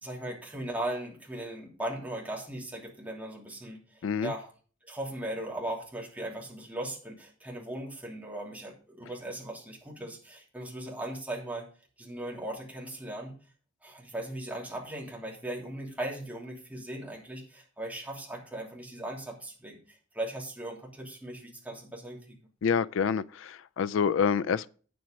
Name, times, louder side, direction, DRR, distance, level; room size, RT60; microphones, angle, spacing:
voice 1, 0.0-4.5 4.8-11.7 12.0-13.3 13.8-22.4, right 1 dB, 10° right, 3.0 m, -38 dB
voice 2, 4.0-4.3 22.6-24.7, left 6 dB, 75° left, 0.4 m, -27 dB
9.1 x 7.8 x 5.2 m
head